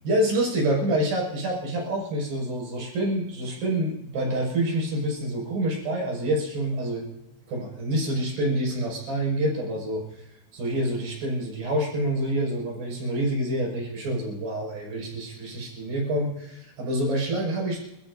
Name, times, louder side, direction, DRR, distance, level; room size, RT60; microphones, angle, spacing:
voice 1, 0.0-7.0 7.5-10.3 10.5-17.8, right 1 dB, 55° right, -2 dB, 8.1 m, -27 dB
29.0 x 14.5 x 2.7 m, 0.88 s
omnidirectional pair, 5.2 m